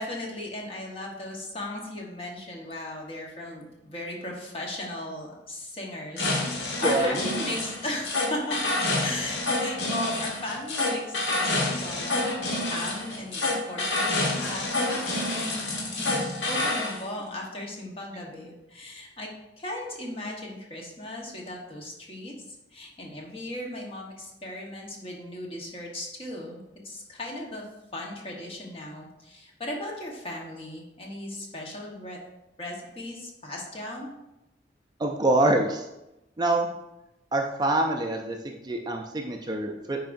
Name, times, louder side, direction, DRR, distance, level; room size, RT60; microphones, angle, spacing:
voice 1, 0.0-8.8 9.0-14.8 15.0-15.5 16.0-19.3 19.6-22.3 22.7-27.6 27.9-32.2 32.6-34.1, left 1 dB, 30° left, -1 dB, 1.2 m, -37 dB
sound 1, 6.2-17.0, left 2 dB, 80° left, 1.3 m, -28 dB
voice 2, 6.8-7.2 35.0-35.8 36.4-36.8 37.3-40.0, right 2 dB, 25° right, 3 dB, 0.4 m, -25 dB
9.1 x 4.7 x 2.6 m, 0.93 s
head